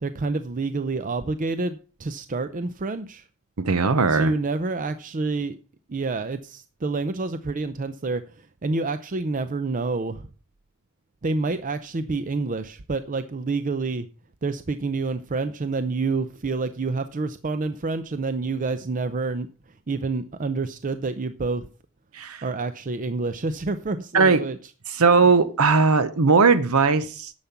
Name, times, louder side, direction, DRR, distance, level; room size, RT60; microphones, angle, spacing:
voice 1, 0.0-3.3 4.1-5.6 5.9-10.3 11.2-14.1 14.4-19.5 19.9-21.7 22.4-24.6, right 3 dB, 35° right, 11 dB, 0.6 m, -28 dB
voice 2, 3.6-4.3 22.1-22.4 24.1-24.4 24.9-27.3, right 4 dB, 75° right, 12 dB, 0.8 m, -19 dB
10.5 x 7.1 x 5.8 m, 0.37 s
head